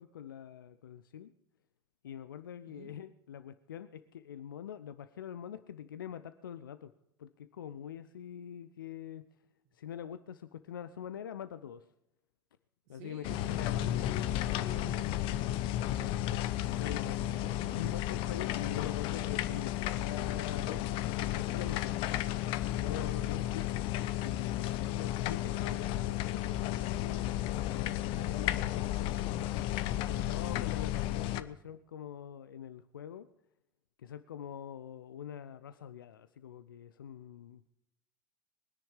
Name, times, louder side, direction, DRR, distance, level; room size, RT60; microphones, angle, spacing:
voice 1, 0.0-1.3 2.0-6.9 7.2-9.2 9.7-11.9 12.9-13.9 16.8-17.2 17.8-22.0 22.7-23.9 24.2-27.4 27.7-29.2 30.0-33.3 34.0-37.7, left 9 dB, 75° left, 13 dB, 0.5 m, -44 dB
voice 2, 12.9-15.5 15.8-16.2 16.8-17.9 31.1-31.2, right 8 dB, 55° right, 5 dB, 1.9 m, -52 dB
sound 1, 13.2-31.4, left 13 dB, 50° left, 0.8 m, -33 dB
22.0 x 10.0 x 5.0 m, 0.89 s
figure-of-eight pair, 75°, 11 cm